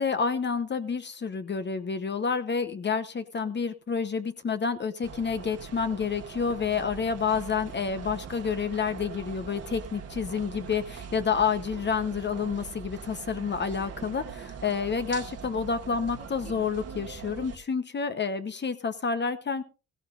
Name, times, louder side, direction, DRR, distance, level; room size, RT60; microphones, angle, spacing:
voice 1, 0.0-19.6, left 5 dB, 35° left, 10 dB, 1.0 m, -29 dB
sound 1, 5.0-17.6, right 6 dB, 55° right, 1.7 m, -42 dB
16.5 x 15.0 x 2.6 m, 0.33 s
cardioid pair, 90°, 30 cm